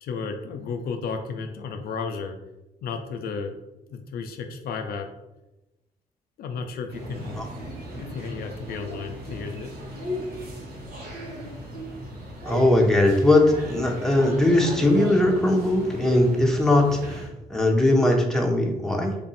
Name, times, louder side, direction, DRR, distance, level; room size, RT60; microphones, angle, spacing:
voice 1, 0.0-2.4 2.8-3.6 3.9-5.1 6.4-9.7, left 5 dB, 80° left, 5 dB, 0.4 m, -33 dB
sound 1, 6.9-17.3, right 1 dB, 75° right, 1.0 m, -36 dB
voice 2, 12.5-19.2, left 1 dB, 5° left, 1 dB, 0.8 m, -20 dB
3.0 x 2.6 x 4.0 m, 0.97 s
cardioid pair, 65°, 16 cm